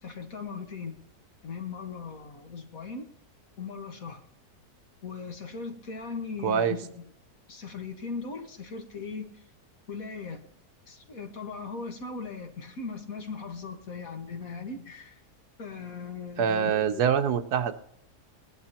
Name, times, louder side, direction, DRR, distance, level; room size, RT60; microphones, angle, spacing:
voice 1, 0.0-1.0 1.4-3.1 3.6-4.2 5.0-7.0 7.5-9.4 9.9-10.4 10.9-15.2 15.6-17.0, left 5 dB, 60° left, 5 dB, 2.0 m, -38 dB
voice 2, 6.4-6.7 16.4-17.7, right 8 dB, 85° right, 9 dB, 1.5 m, -24 dB
19.0 x 11.0 x 3.0 m, 0.70 s
omnidirectional pair, 1.7 m